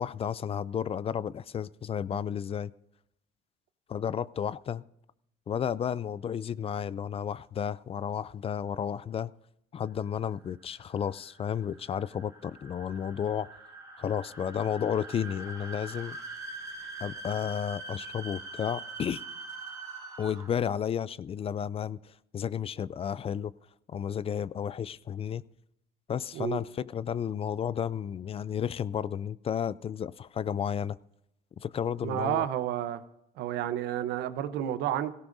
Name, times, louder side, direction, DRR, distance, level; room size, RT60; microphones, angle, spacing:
voice 1, 0.0-2.7 3.9-4.8 5.5-9.3 9.7-13.5 14.0-16.2 17.0-19.2 20.2-23.5 23.9-25.4 26.1-31.0 31.6-32.4, left 8 dB, 35° left, 0.4 m, -32 dB
sound 1, 10.1-20.7, right 3 dB, 20° right, 3.7 m, -43 dB
voice 2, 32.0-33.0 33.4-35.1, right 11 dB, 85° right, 0.9 m, -30 dB
18.0 x 17.0 x 2.7 m
cardioid pair, 110°, 17 cm